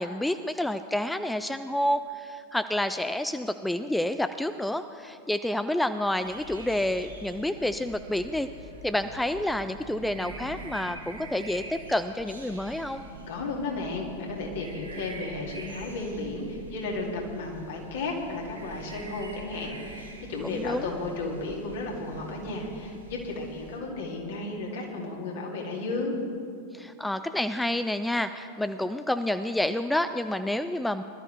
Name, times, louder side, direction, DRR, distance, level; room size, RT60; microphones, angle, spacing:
voice 1, 0.0-8.5 8.8-13.0 20.5-20.9 26.7-31.0, left 1 dB, 5° left, 10 dB, 0.4 m, -29 dB
sound 1, 6.2-23.8, right 2 dB, 80° right, 2.8 m, -44 dB
voice 2, 13.3-26.2, left 3 dB, 55° left, -1 dB, 2.6 m, -34 dB
20.5 x 12.5 x 3.5 m, 2.4 s
figure-of-eight pair, 90°, 0 cm